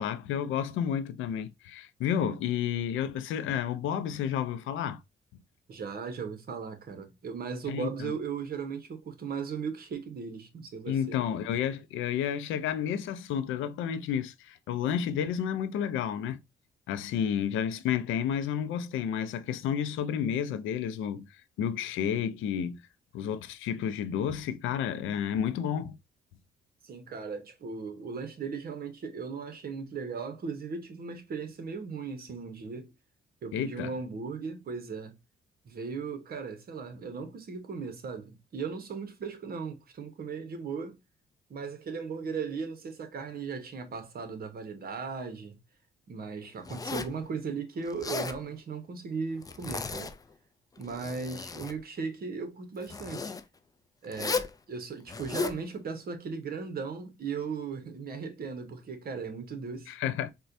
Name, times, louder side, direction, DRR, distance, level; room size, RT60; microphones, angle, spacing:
voice 1, 0.0-5.0 7.7-8.1 10.9-16.4 16.9-22.8 23.1-26.0 33.5-33.9 59.9-60.3, left 9 dB, 85° left, 0.4 m, -31 dB
voice 2, 5.7-11.2 26.8-32.9 33.4-35.1 35.6-41.0 41.5-45.5 46.1-50.1 50.8-53.3 54.0-59.9, right 5 dB, 50° right, 0.9 m, -37 dB
Zipper (clothing), 46.6-47.2 47.9-48.4 49.4-50.3 50.8-51.8 52.8-53.4 54.1-54.5 55.1-55.6, left 5 dB, 20° left, 0.3 m, -35 dB
4.2 x 2.2 x 2.5 m
cardioid pair, 90°, 20 cm